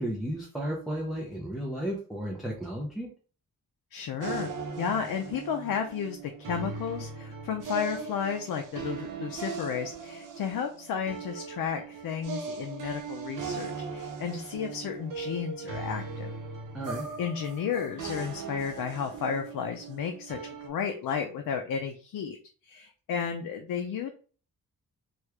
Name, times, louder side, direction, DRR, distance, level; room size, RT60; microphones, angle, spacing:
voice 1, 0.0-3.1 16.7-17.1, equal, ahead, -3 dB, 0.5 m, -33 dB
voice 2, 3.9-4.5 4.8-16.3 17.2-22.4 22.6-24.1, left 7 dB, 80° left, 4 dB, 0.5 m, -33 dB
sound 1, 4.2-20.7, right 5 dB, 65° right, 0.7 m, -39 dB
3.0 x 2.4 x 3.2 m, 0.39 s
wide cardioid pair, 125°, 34 cm